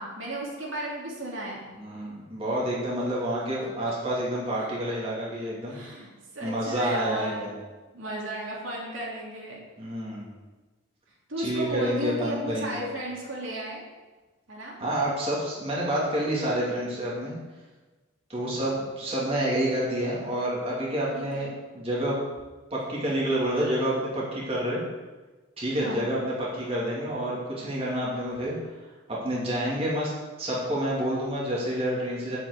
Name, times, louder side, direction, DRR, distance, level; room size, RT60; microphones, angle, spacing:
voice 1, 0.0-1.6 4.6-4.7 5.7-6.1 6.3-7.5 7.9-9.6 11.3-13.8 14.5-14.8 18.4-18.5 21.1-21.5 25.7-26.1, right 1 dB, 80° right, -4 dB, 2.9 m, -34 dB
voice 2, 1.8-5.8 6.4-7.5 9.8-10.3 11.4-12.8 14.8-17.3 18.3-21.5 21.7-22.2 22.7-24.8 25.6-28.6 29.1-30.1 30.4-32.4, right 1 dB, 30° right, -6 dB, 2.6 m, -28 dB
7.6 x 6.3 x 8.0 m, 1.3 s
head